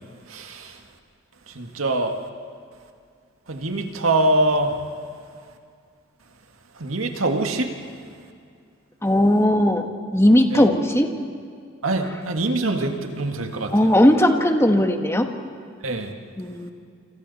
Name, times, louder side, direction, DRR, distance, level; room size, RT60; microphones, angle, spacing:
voice 1, 0.3-0.8 1.5-2.2 3.5-4.8 6.7-7.7 10.5-10.7 11.8-13.9 15.8-16.1, right 2 dB, 85° right, 4 dB, 1.9 m, -24 dB
voice 2, 9.0-9.9 10.1-11.1 13.7-15.3 16.4-16.7, left 1 dB, 15° left, 5 dB, 1.4 m, -17 dB
29.0 x 26.0 x 4.2 m, 2.3 s
head